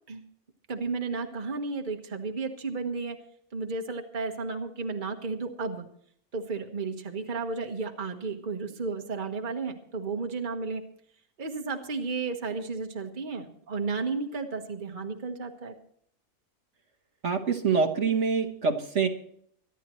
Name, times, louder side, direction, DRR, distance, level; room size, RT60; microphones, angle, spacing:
voice 1, 0.7-3.2 3.5-5.9 6.3-10.8 11.4-15.7, right 4 dB, 35° right, 4 dB, 1.5 m, -33 dB
voice 2, 17.2-19.1, right 5 dB, 55° right, 1 dB, 1.5 m, -25 dB
25.0 x 11.0 x 3.1 m, 0.66 s
omnidirectional pair, 1.5 m